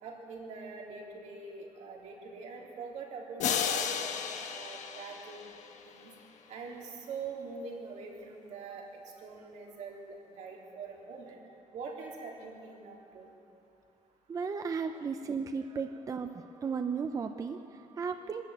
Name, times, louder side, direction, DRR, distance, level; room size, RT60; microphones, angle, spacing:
voice 1, 0.0-4.1 4.5-5.4 5.9-6.1 6.5-11.4 11.7-13.3, right 4 dB, 75° right, -2 dB, 3.9 m, -44 dB
sound 1, 3.4-6.1, left 8 dB, 80° left, 1.3 m, -34 dB
voice 2, 14.3-18.4, right 5 dB, 30° right, 7 dB, 0.6 m, -35 dB
23.0 x 13.0 x 9.3 m, 2.7 s
cardioid pair, 170°, 12 cm